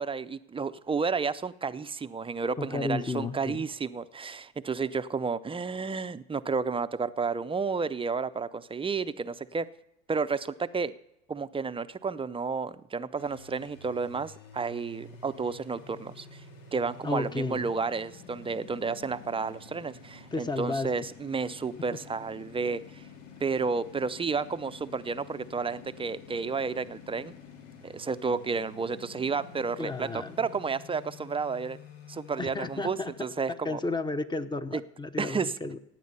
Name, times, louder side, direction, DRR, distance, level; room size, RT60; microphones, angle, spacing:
voice 1, 0.0-9.7 10.1-10.9 11.3-16.4 16.7-23.0 23.4-27.3 27.8-31.8 32.1-33.8 34.7-34.8 35.2-35.5, right 5 dB, 15° right, 13 dB, 0.5 m, -31 dB
voice 2, 2.6-3.6 17.0-17.7 20.3-20.9 29.8-30.4 32.4-33.1 33.5-35.8, left 3 dB, 10° left, 12 dB, 0.9 m, -33 dB
sound 1, 13.2-32.9, left 5 dB, 85° left, 2.1 m, -49 dB
16.5 x 9.0 x 5.5 m, 0.87 s
hypercardioid pair, 90°, 37 cm